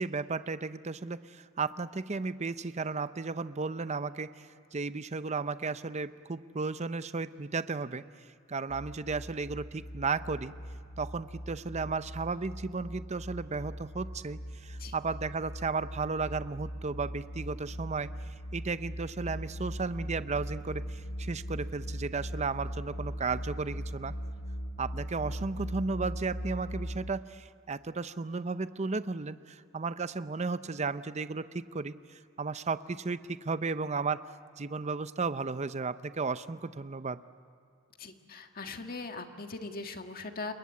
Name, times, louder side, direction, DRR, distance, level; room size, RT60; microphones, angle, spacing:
voice 1, 0.0-4.3 4.7-8.0 8.5-10.5 11.0-18.1 18.5-24.1 24.8-34.2 34.6-37.2, right 4 dB, 35° right, 13 dB, 0.6 m, -34 dB
sound 1, 8.7-27.1, equal, 75° left, 1.5 m, -40 dB
voice 2, 38.0-40.5, left 3 dB, 50° left, 5 dB, 1.8 m, -40 dB
28.5 x 22.0 x 8.5 m, 2.4 s
head